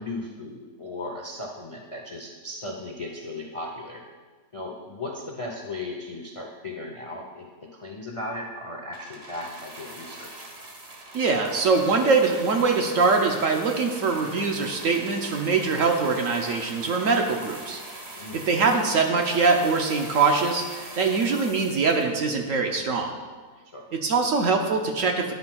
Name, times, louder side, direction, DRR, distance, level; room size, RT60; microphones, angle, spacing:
voice 1, 0.0-4.0 4.5-10.5 18.2-18.5 23.7-23.9, left 2 dB, 40° left, 0 dB, 0.4 m, -36 dB
sound 1, 8.9-22.6 23.4-23.5, right 2 dB, 40° right, 1.2 m, -42 dB
voice 2, 11.1-17.8 18.3-23.1 23.9-25.3, right 4 dB, 60° right, 3 dB, 0.9 m, -23 dB
9.7 x 9.5 x 2.3 m, 1.4 s
omnidirectional pair, 1.7 m